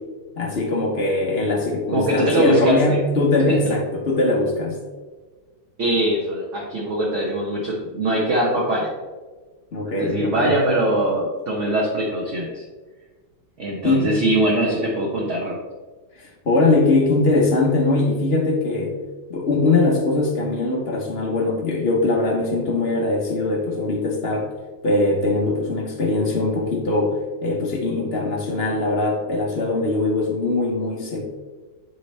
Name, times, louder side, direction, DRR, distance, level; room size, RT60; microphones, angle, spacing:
voice 1, 0.3-4.8 9.7-10.5 13.8-14.2 16.2-19.0 19.3-24.5 24.8-31.2, left 2 dB, 50° left, 0 dB, 0.7 m, -21 dB
voice 2, 1.9-3.0 3.5-3.8 5.8-8.9 9.8-12.6 13.6-15.6, right 1 dB, 50° right, -3 dB, 1.0 m, -22 dB
8.4 x 4.2 x 3.2 m, 1.3 s
omnidirectional pair, 2.3 m